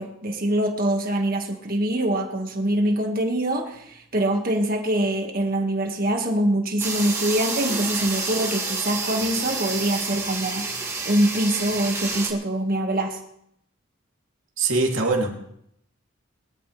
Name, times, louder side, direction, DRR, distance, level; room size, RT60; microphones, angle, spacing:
voice 1, 0.0-10.6 11.1-13.2, right 1 dB, 45° right, 3 dB, 1.9 m, -24 dB
sound 1, 6.8-12.3, right 3 dB, 15° right, 2.1 m, -29 dB
voice 2, 14.6-15.4, right 3 dB, 70° right, 0 dB, 3.0 m, -22 dB
23.0 x 12.5 x 3.4 m, 0.76 s
head